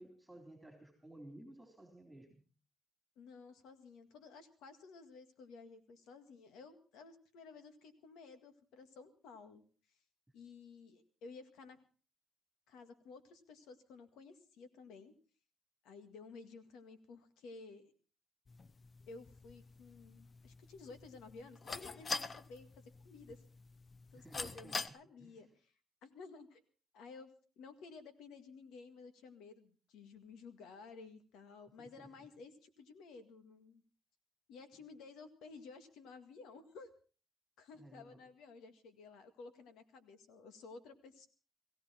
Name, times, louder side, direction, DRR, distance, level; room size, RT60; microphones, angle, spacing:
voice 1, 0.0-2.4 24.1-25.4 31.8-32.1 37.7-38.2, right 1 dB, 5° right, 3 dB, 3.7 m, -56 dB
voice 2, 3.2-9.6 10.3-11.8 12.7-15.1 15.8-17.9 19.1-23.4 24.1-25.7 26.0-26.6 26.9-27.3 27.6-33.8 34.5-36.9 37.6-41.3, left 4 dB, 90° left, 9 dB, 1.9 m, -54 dB
sound 1, 18.5-24.9, left 4 dB, 35° left, 0.7 m, -45 dB
17.5 x 16.5 x 4.3 m, 0.38 s
cardioid pair, 90°, 0 cm